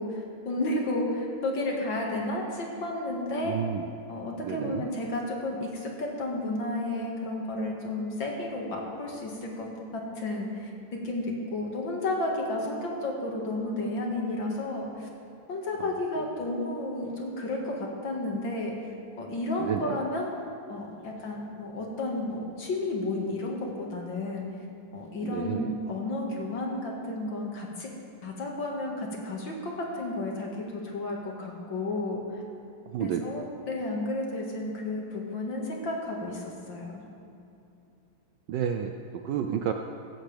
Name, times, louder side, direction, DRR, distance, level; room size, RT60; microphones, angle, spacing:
voice 1, 0.0-3.6 4.1-15.1 15.5-18.7 19.2-20.3 20.7-24.5 24.9-27.9 28.2-32.4 33.0-37.0, left 2 dB, 60° left, -1 dB, 2.5 m, -32 dB
voice 2, 3.4-3.9 4.4-4.9 15.8-16.0 19.6-20.0 25.2-25.8 32.9-33.2 38.5-39.7, right 9 dB, 70° right, 5 dB, 1.1 m, -31 dB
16.0 x 14.5 x 3.4 m, 2.7 s
omnidirectional pair, 2.4 m